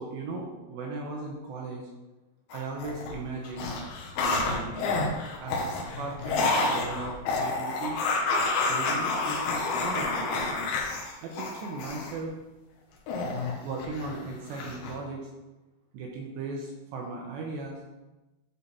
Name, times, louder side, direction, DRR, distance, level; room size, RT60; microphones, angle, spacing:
voice 1, 0.0-1.8 2.5-3.7 4.2-4.9 5.4-8.0 8.7-9.1 9.8-10.5 11.2-12.3 13.6-15.2 15.9-17.8, right 3 dB, 75° right, -1 dB, 2.8 m, -37 dB
sound 1, 2.5-3.1 3.4-12.1 13.1-14.2 14.5-14.9, left 3 dB, 75° left, 3.3 m, -29 dB
11.5 x 4.0 x 4.2 m, 1.1 s
omnidirectional pair, 5.7 m